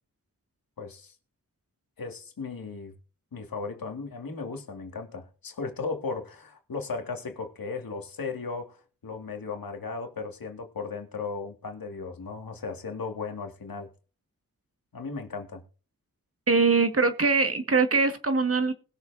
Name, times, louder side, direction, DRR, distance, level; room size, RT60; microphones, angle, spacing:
voice 1, 0.8-1.1 2.0-2.9 3.3-13.9 14.9-15.6, left 4 dB, 80° left, 2.1 m, -36 dB
voice 2, 16.5-18.7, right 4 dB, 40° right, 1.7 m, -22 dB
20.5 x 7.1 x 2.7 m
wide cardioid pair, 95°, 34 cm